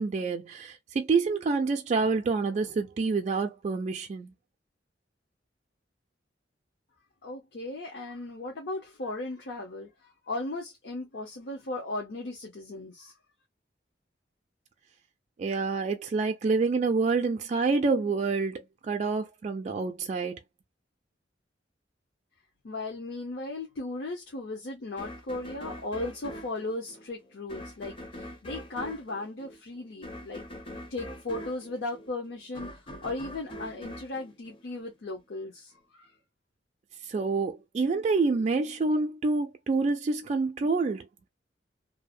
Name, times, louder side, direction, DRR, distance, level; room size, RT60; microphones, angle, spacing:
voice 1, 0.0-4.3 15.4-20.4 37.1-41.1, right 4 dB, 40° right, 0.3 m, -27 dB
voice 2, 7.2-13.1 22.6-30.4 30.9-32.7 33.0-36.2, left 2 dB, 65° left, 0.7 m, -36 dB
sound 1, 25.0-35.2, equal, 30° left, 0.5 m, -43 dB
2.7 x 2.0 x 2.4 m
head